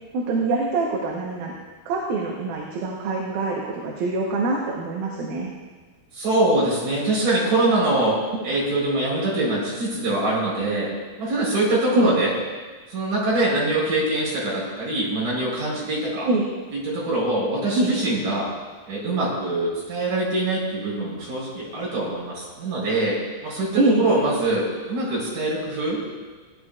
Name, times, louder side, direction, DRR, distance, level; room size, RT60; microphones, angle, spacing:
voice 1, 0.1-1.5 1.9-5.5 11.9-12.2 16.3-16.5 17.8-17.9 23.8-24.1, right 2 dB, 75° right, -2 dB, 2.8 m, -24 dB
voice 2, 6.1-8.2 8.4-10.9 11.2-12.3 12.9-16.3 16.7-18.5 18.9-26.0, right 2 dB, 60° right, -6 dB, 5.5 m, -23 dB
17.5 x 10.0 x 2.4 m, 1.3 s
omnidirectional pair, 4.4 m